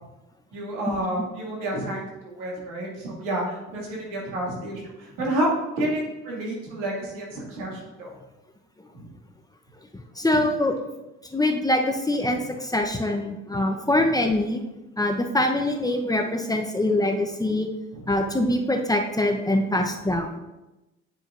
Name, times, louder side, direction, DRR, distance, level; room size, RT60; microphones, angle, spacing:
voice 1, 0.5-3.8 4.1-8.2 8.9-9.1 12.3-12.4 17.9-18.0, right 1 dB, 80° right, -3 dB, 2.1 m, -29 dB
voice 2, 10.2-10.8 11.3-14.6 15.0-17.7 18.1-20.4, left 1 dB, 10° left, 3 dB, 0.8 m, -24 dB
9.2 x 4.9 x 2.5 m, 1.0 s
hypercardioid pair, 65°, 33 cm